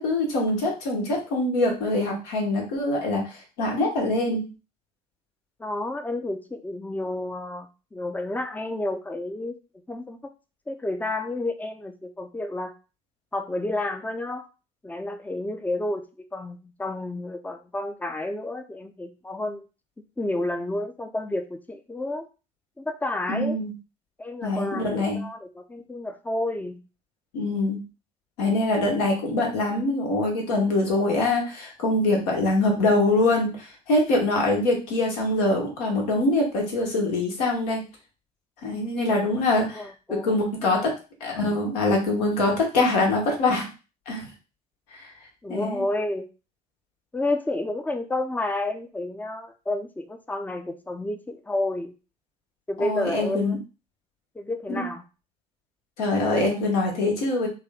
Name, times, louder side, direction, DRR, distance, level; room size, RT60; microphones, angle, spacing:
voice 1, 0.0-4.5 23.3-23.7 24.4-25.2 27.3-27.8 28.4-37.9 38.6-40.9 41.2-43.7 44.1-44.3 44.9-45.1 45.5-45.8 52.8-53.6 54.7-54.8 56.0-57.5, left 2 dB, 65° left, 0 dB, 1.1 m, -24 dB
voice 2, 5.6-9.5 9.9-10.2 10.7-12.7 13.3-14.5 14.8-16.0 16.3-19.7 20.2-22.3 22.8-23.6 24.2-26.8 39.7-40.4 40.6-40.7 45.4-46.3 47.1-51.9 52.7-53.6 54.3-55.0, left 2 dB, 10° left, 7 dB, 0.5 m, -30 dB
3.4 x 2.4 x 3.5 m, 0.32 s
figure-of-eight pair, 50°, 21 cm